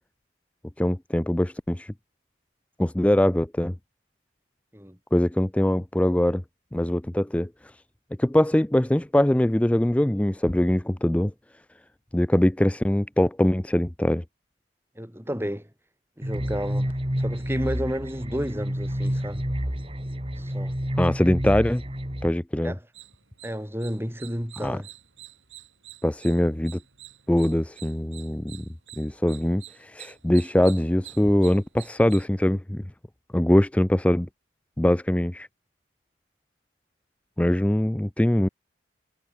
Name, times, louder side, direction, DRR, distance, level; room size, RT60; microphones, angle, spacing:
voice 1, 0.8-1.9 2.8-3.7 5.1-6.4 6.7-7.8 8.2-11.3 12.1-14.2 21.0-21.8 22.2-22.7 24.6-24.8 26.0-26.8 27.3-28.6 29.0-32.8 33.3-34.3 34.8-35.5 37.4-38.5, left 1 dB, 5° left, 0.4 m, -22 dB
voice 2, 15.0-15.7 16.2-16.9 17.2-19.5 20.4-20.8 22.6-22.8 23.4-24.9, equal, 10° right, 5.7 m, -32 dB
sound 1, 16.2-22.3, equal, 30° right, 3.4 m, -29 dB
sound 2, 22.9-32.3, right 14 dB, 90° right, 4.7 m, -48 dB
head